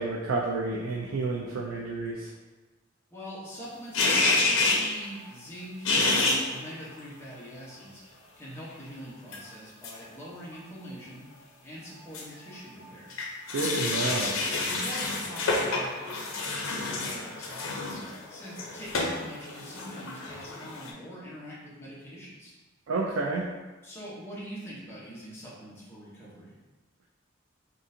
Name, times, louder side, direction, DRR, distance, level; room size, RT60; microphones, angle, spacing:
voice 1, 0.0-2.3 13.5-14.3 22.9-23.4, right 3 dB, 90° right, -3 dB, 0.4 m, -30 dB
voice 2, 3.1-11.3 11.6-13.2 13.9-22.5 23.8-26.5, equal, 15° left, -8 dB, 1.0 m, -44 dB
sound 1, 3.9-4.9 5.8-6.6 9.3-9.4 9.8-10.0 10.5-10.6 12.1-12.2 12.8-20.9, left 3 dB, 90° left, 0.5 m, -28 dB
3.7 x 2.5 x 2.7 m, 1.2 s
head